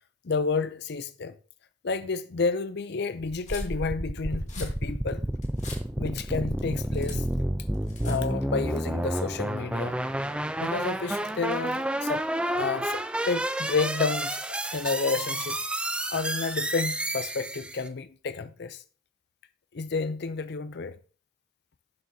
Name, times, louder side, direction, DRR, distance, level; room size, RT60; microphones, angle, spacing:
voice 1, 0.2-1.3 1.8-5.2 6.0-7.2 8.0-10.0 10.6-15.6 16.1-18.8 19.7-21.0, left 4 dB, 55° left, 0.5 m, -30 dB
sound 1, 3.2-8.5, left 3 dB, 35° left, 2.2 m, -46 dB
sound 2, 3.5-17.9, right 1 dB, 5° right, 0.4 m, -30 dB
11.0 x 7.6 x 2.7 m
head